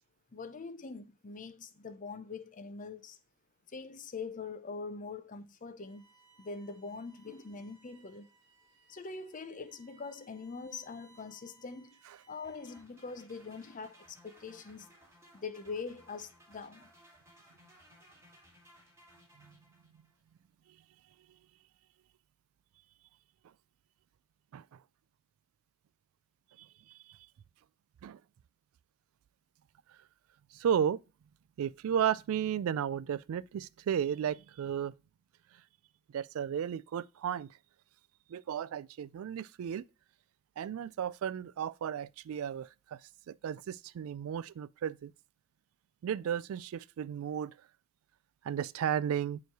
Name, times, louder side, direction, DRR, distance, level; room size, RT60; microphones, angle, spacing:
voice 1, 0.3-3.2 3.7-6.1 6.4-8.3 8.9-12.0 12.3-14.9 15.3-16.9, left 4 dB, 35° left, 0.6 m, -43 dB
Bowed string instrument, 5.8-13.0, right 4 dB, 55° right, 1.1 m, -65 dB
sound 1, 12.4-20.2, equal, 15° right, 1.9 m, -61 dB
voice 2, 26.6-27.2 28.0-28.2 29.9-30.0 30.5-31.0 31.6-34.9 36.1-37.6 38.3-39.9 40.6-43.0 43.3-45.1 46.0-47.6 48.4-49.4, right 9 dB, 70° right, 0.3 m, -34 dB
6.9 x 3.2 x 4.5 m
head